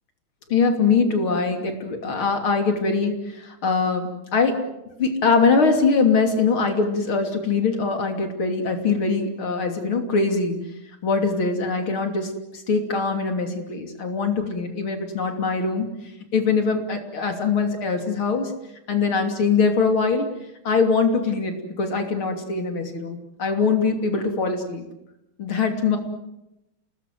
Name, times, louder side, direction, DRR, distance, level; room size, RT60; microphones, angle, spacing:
voice 1, 0.5-4.6 5.0-10.6 11.0-15.9 16.3-18.5 18.9-20.3 20.6-24.8 25.4-26.0, left 4 dB, 85° left, 5 dB, 3.8 m, -22 dB
29.0 x 19.5 x 7.7 m, 0.90 s
omnidirectional pair, 2.2 m